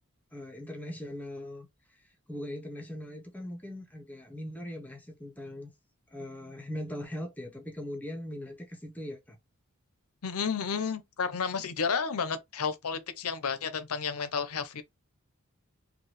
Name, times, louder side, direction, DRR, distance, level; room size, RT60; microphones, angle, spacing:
voice 1, 0.3-1.7 2.3-5.7 6.1-9.4, left 1 dB, 5° left, 0.8 m, -40 dB
voice 2, 10.2-14.8, left 6 dB, 75° left, 0.7 m, -31 dB
4.5 x 2.3 x 3.2 m
head